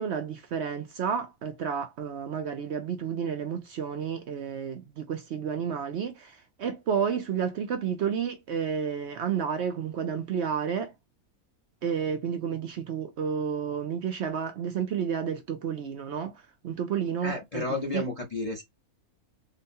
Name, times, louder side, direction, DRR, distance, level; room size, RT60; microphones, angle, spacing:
voice 1, 0.0-10.9 11.8-17.6 17.9-18.0, right 7 dB, 60° right, 0.7 m, -31 dB
voice 2, 17.2-18.6, left 2 dB, 30° left, 0.8 m, -32 dB
3.8 x 2.2 x 2.6 m
omnidirectional pair, 1.6 m